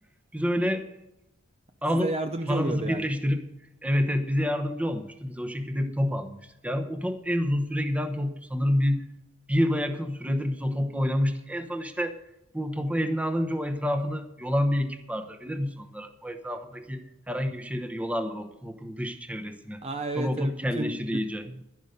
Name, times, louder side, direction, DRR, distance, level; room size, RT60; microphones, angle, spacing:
voice 1, 0.3-0.8 1.8-2.1 2.5-3.4 3.8-9.0 9.5-12.2 12.5-19.8 20.2-21.5, equal, 5° right, 6 dB, 0.9 m, -28 dB
voice 2, 1.9-3.1 19.8-21.6, right 2 dB, 30° right, 7 dB, 0.6 m, -32 dB
12.0 x 11.0 x 5.1 m, 0.90 s
head